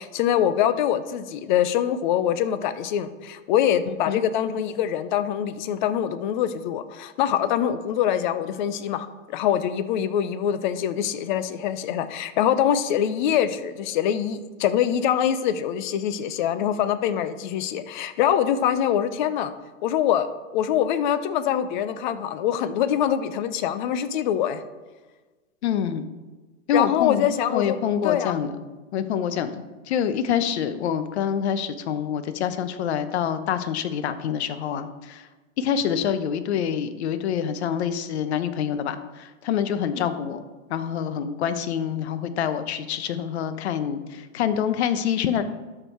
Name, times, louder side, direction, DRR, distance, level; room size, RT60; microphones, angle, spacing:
voice 1, 0.0-19.5 19.8-24.6 26.7-27.8 28.0-28.4 39.9-40.1, left 10 dB, 40° left, 13 dB, 0.6 m, -24 dB
voice 2, 3.9-4.2 25.6-26.0 26.7-28.6 28.9-35.3 35.6-40.4 40.7-45.4, left 8 dB, 55° left, 11 dB, 0.9 m, -26 dB
12.5 x 4.7 x 4.4 m, 1.2 s
hypercardioid pair, 140°, 39 cm